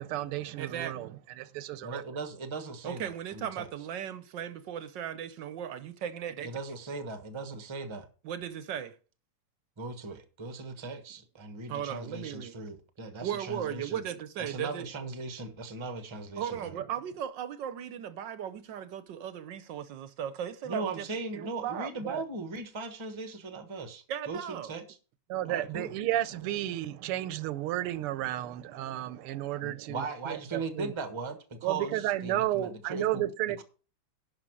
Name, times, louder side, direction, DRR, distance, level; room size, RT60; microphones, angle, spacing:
voice 1, 0.0-2.0 22.0-22.2 25.3-30.9 31.6-33.6, right 13 dB, 85° right, 1.6 m, -32 dB
voice 2, 0.6-1.2 2.8-6.5 8.2-8.9 11.7-12.6 13.2-14.9 16.4-21.1 21.3-21.9 24.1-24.7, right 9 dB, 65° right, 1.2 m, -37 dB
voice 3, 1.8-3.7 6.4-8.1 9.8-14.0 14.4-16.8 20.6-25.0 25.5-25.9 29.6-33.3 33.6-33.7, right 3 dB, 20° right, 0.8 m, -38 dB
11.5 x 5.5 x 6.2 m
omnidirectional pair, 2.4 m